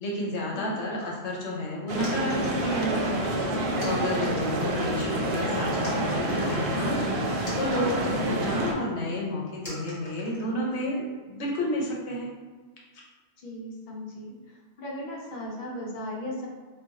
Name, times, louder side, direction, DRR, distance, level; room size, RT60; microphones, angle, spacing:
voice 1, 0.0-3.2 3.8-7.0 7.5-12.3, left 1 dB, 80° left, -3 dB, 1.0 m, -31 dB
sound 1, 1.0-1.4 2.0-3.2 3.8-4.6 4.9-5.5 5.8-8.4 8.8-8.9 9.6-10.8, equal, 30° left, 1.1 m, -44 dB
sound 2, 1.9-8.7, right 1 dB, 70° right, 0.8 m, -28 dB
voice 2, 13.4-14.4 14.8-16.5, left 1 dB, 50° left, -4 dB, 0.8 m, -37 dB
2.4 x 2.3 x 3.9 m, 1.4 s
omnidirectional pair, 1.1 m